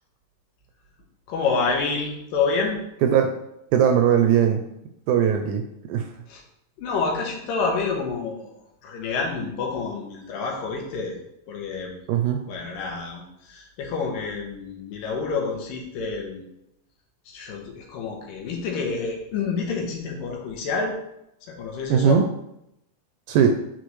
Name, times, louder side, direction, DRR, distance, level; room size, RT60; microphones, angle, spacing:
voice 1, 1.3-2.8 6.3-6.4 6.8-11.1 11.5-11.9 12.5-16.4 17.3-20.9 21.5-22.2, left 4 dB, 90° left, 1 dB, 2.9 m, -28 dB
voice 2, 3.7-4.6 5.1-6.1 12.1-12.4 21.9-22.3 23.3-23.5, right 8 dB, 80° right, 5 dB, 1.8 m, -19 dB
9.9 x 4.2 x 3.1 m, 0.82 s
omnidirectional pair, 3.8 m